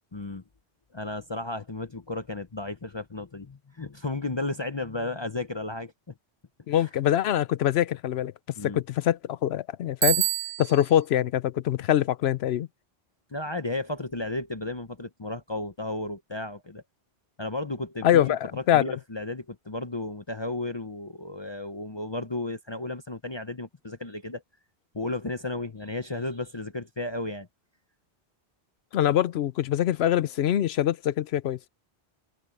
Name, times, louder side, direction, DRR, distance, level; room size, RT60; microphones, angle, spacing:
voice 1, 0.1-0.4 0.9-5.9 6.8-6.9 8.6-8.8 13.3-16.8 17.4-24.4 24.9-27.5, left 2 dB, 30° left, 0.7 m, -33 dB
voice 2, 6.7-8.3 8.6-10.3 10.6-12.7 18.0-18.9 28.9-31.6, left 11 dB, 75° left, 0.8 m, -24 dB
Bicycle bell, 10.0-11.0, right 15 dB, 90° right, 0.9 m, -26 dB
omnidirectional pair, 1.1 m